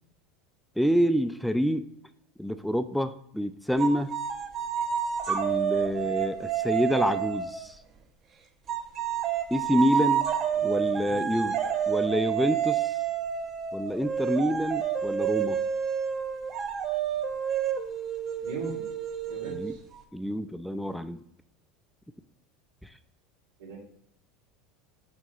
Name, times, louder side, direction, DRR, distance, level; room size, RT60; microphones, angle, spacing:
voice 1, 0.8-1.8 2.4-4.1 5.3-7.8 9.5-10.3 10.6-11.6 11.9-13.0 13.7-15.6 19.5-19.7 20.1-21.2 22.8-22.9, equal, ahead, 11 dB, 0.3 m, -27 dB
sound 1, 3.8-7.7 8.7-20.0, right 8 dB, 35° right, 0.8 m, -29 dB
voice 2, 10.5-11.7 18.4-18.8 19.3-19.8 23.6-23.8, right 3 dB, 90° right, -2 dB, 2.7 m, -41 dB
8.0 x 3.4 x 4.0 m, 0.72 s
supercardioid pair, 120°, 0 cm